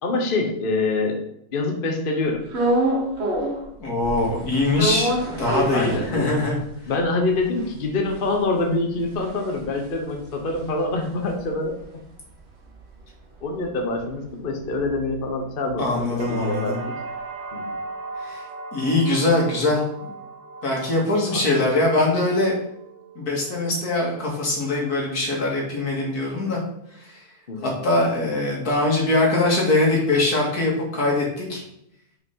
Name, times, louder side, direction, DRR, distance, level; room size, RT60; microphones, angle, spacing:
voice 1, 0.0-1.2 1.5-2.4 5.7-6.3 6.9-11.7 13.4-17.0 17.5-17.7 21.3-21.6 27.5-27.7, left 2 dB, 40° left, 2 dB, 1.2 m, -25 dB
sound 1, 2.5-3.7 4.0-6.6 7.0-7.1 7.3-11.8 12.1-16.2, right 1 dB, 45° right, 1.5 m, -28 dB
voice 2, 3.8-5.1 5.4-6.6 15.8-16.8 18.2-18.5 18.7-20.1 20.6-22.5 23.2-26.6 27.0-27.2 27.6-31.6, left 2 dB, 75° left, -2 dB, 2.6 m, -22 dB
sound 2, 16.2-24.1 24.5-25.1, right 3 dB, 80° right, 1.6 m, -38 dB
5.6 x 5.6 x 5.5 m, 0.76 s
omnidirectional pair, 1.6 m